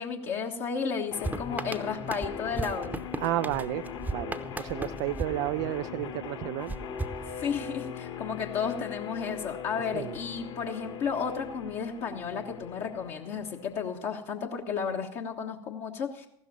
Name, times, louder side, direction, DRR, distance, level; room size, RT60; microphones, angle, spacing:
voice 1, 0.0-3.0 7.4-16.3, left 6 dB, 50° left, 0 dB, 1.4 m, -33 dB
sound 1, 1.1-14.1, left 7 dB, 65° left, 2.7 m, -40 dB
sound 2, 1.2-6.1 6.7-7.9, right 2 dB, 10° right, 0.9 m, -37 dB
voice 2, 3.2-3.9 4.1-6.7 9.9-10.2, right 16 dB, 55° right, 10 dB, 0.4 m, -32 dB
15.5 x 12.5 x 4.1 m, 0.74 s
figure-of-eight pair, 65°, 15 cm